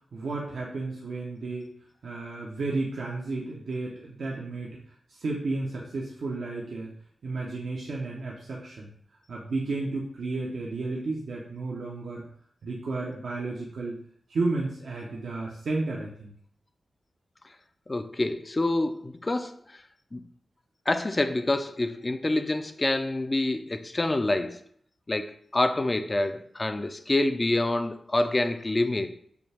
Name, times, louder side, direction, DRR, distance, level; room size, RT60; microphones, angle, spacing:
voice 1, 0.1-1.7 2.0-4.8 5.2-6.9 7.2-8.9 9.3-12.2 12.6-14.0 14.3-16.3, right 3 dB, 80° right, -4 dB, 0.8 m, -32 dB
voice 2, 17.9-19.6 20.1-20.2 20.9-24.6 25.1-29.2, left 2 dB, 30° left, 9 dB, 0.4 m, -27 dB
6.8 x 2.3 x 3.4 m, 0.62 s
cardioid pair, 70°, 0 cm